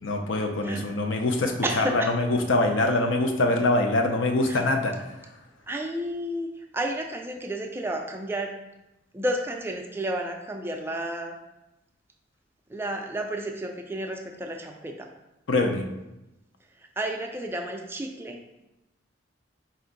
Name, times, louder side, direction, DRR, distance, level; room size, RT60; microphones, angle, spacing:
voice 1, 0.0-4.9 15.5-15.8, left 2 dB, 90° left, 4 dB, 0.6 m, -24 dB
voice 2, 1.6-2.1 4.5-4.7 5.7-6.5 6.7-8.5 9.1-11.4 12.7-15.1 17.0-18.7, right 1 dB, 10° right, 2 dB, 0.3 m, -31 dB
4.3 x 2.6 x 3.8 m, 0.94 s
head